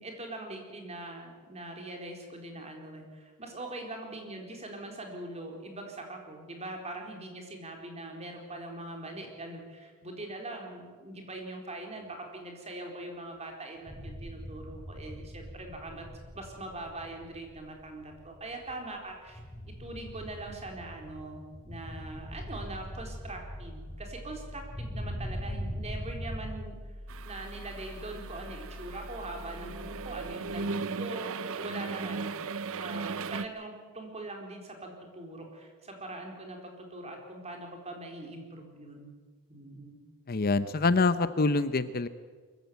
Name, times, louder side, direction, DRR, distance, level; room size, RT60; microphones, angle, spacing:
voice 1, 0.0-16.1 16.3-19.4 19.8-26.8 27.2-32.3 32.7-39.1 39.5-40.0, right 2 dB, 30° right, 2 dB, 4.2 m, -42 dB
sound 1, 13.9-26.6, equal, 20° left, 7.0 m, -42 dB
sound 2, 22.3-30.3, equal, 45° right, 5.8 m, -45 dB
sound 3, 27.1-33.5, right 4 dB, 65° right, 0.8 m, -37 dB
voice 2, 40.3-42.1, left 3 dB, 45° left, 13 dB, 0.7 m, -25 dB
23.5 x 15.0 x 9.4 m, 1.5 s
head